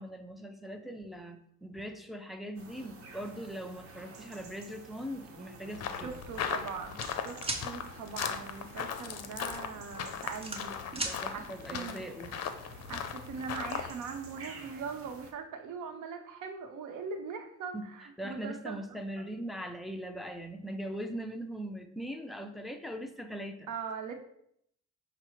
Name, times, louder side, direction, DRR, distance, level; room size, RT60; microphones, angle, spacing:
voice 1, 0.0-6.1 10.9-12.4 17.7-17.8 18.2-23.7, equal, ahead, 5 dB, 0.4 m, -41 dB
sound 1, 2.6-15.3, right 3 dB, 50° right, 0.9 m, -51 dB
sound 2, 5.7-13.9, left 7 dB, 60° left, 0.5 m, -38 dB
voice 2, 6.0-12.0 12.9-19.0 23.7-24.1, right 5 dB, 85° right, 6 dB, 0.7 m, -41 dB
sound 3, 7.0-7.6 9.3-9.5 9.9-11.2, right 2 dB, 20° right, 0.9 m, -35 dB
5.6 x 2.0 x 4.4 m, 0.71 s
cardioid pair, 90°, 30 cm